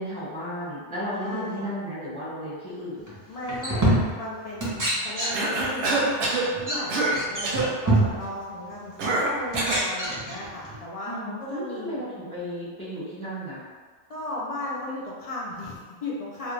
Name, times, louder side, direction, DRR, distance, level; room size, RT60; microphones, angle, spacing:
voice 1, 0.0-3.1 11.1-13.6, equal, 5° left, -11 dB, 0.9 m, -34 dB
voice 2, 1.1-1.7 3.3-12.0 14.1-16.5, left 1 dB, 60° left, -6 dB, 0.3 m, -36 dB
sound 1, 3.1-3.2 3.5-4.3 4.6-5.7 6.0-6.1 6.6-6.8 7.1-8.3 9.0-9.1 9.5-10.8, right 1 dB, 25° right, 0.5 m, -25 dB
Cough, 5.3-6.5 6.9-7.2 7.4-7.7 9.0-9.9, right 2 dB, 90° right, 0.9 m, -25 dB
2.3 x 2.1 x 3.1 m, 1.5 s
omnidirectional pair, 1.1 m